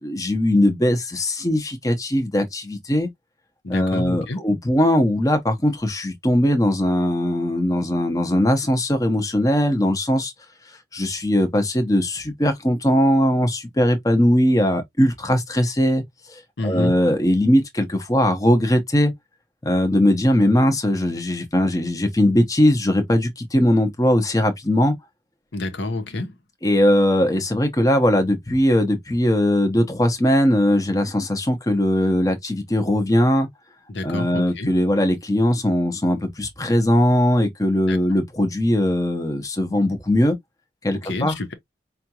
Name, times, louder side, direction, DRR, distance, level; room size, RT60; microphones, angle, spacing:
voice 1, 0.0-3.1 3.7-10.3 10.7-16.0 16.3-19.1 19.6-24.9 26.6-33.5 34.0-40.4 40.8-41.3, left 1 dB, 20° left, 0.7 m, -20 dB
voice 2, 3.6-4.4 16.6-17.0 25.5-26.4 33.9-34.7 37.9-38.0 40.9-41.5, left 2 dB, 85° left, 0.9 m, -28 dB
5.0 x 2.3 x 2.8 m
head